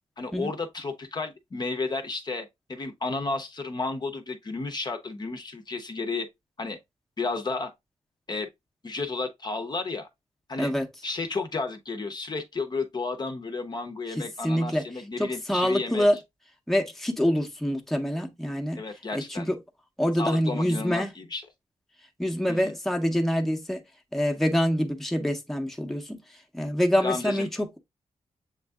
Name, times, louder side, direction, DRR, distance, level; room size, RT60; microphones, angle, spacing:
voice 1, 0.2-6.3 6.6-6.8 7.2-7.7 8.3-8.5 8.8-10.1 10.5-10.7 11.0-16.1 18.8-19.5 20.2-21.5 22.5-22.7 27.0-27.5, left 3 dB, 35° left, 0.6 m, -32 dB
voice 2, 14.4-14.8 15.2-16.2 16.7-18.8 19.3-19.6 20.0-21.1 22.2-23.8 24.1-26.2 26.5-27.8, equal, ahead, 0.7 m, -25 dB
7.1 x 2.6 x 2.2 m
wide cardioid pair, 100°, 12 cm